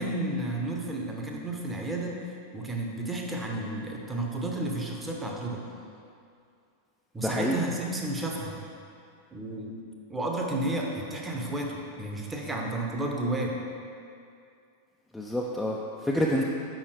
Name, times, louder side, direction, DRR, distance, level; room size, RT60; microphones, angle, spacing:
voice 1, 0.0-2.2 2.5-5.6 7.1-8.6 9.3-9.8 10.1-13.6, right 2 dB, 10° right, 0 dB, 0.8 m, -32 dB
voice 2, 7.2-7.6 15.1-16.4, equal, 5° left, -3 dB, 0.4 m, -28 dB
6.3 x 5.4 x 3.3 m, 2.4 s
figure-of-eight pair, 90°, 0 cm